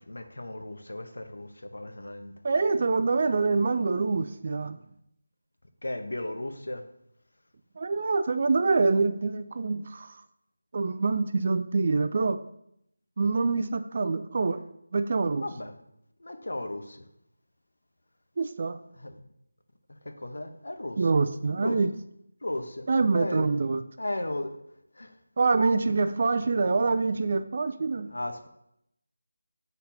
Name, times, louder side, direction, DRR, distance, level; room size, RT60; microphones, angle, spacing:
voice 1, 0.0-2.3 5.8-6.8 15.4-15.7 16.2-17.0 18.9-19.1 20.2-21.0 21.6-21.8 22.4-22.9 23.1-23.5 24.0-24.6 24.9-25.1 28.1-28.5, left 1 dB, 80° left, 6 dB, 0.9 m, -35 dB
voice 2, 2.4-4.8 7.8-10.1 10.7-12.4 13.2-14.6 14.9-15.4 18.4-18.8 21.0-21.9 22.9-23.8 25.4-28.1, right 4 dB, 40° right, 10 dB, 0.4 m, -25 dB
8.4 x 4.0 x 2.8 m, 0.79 s
figure-of-eight pair, 170°, 0 cm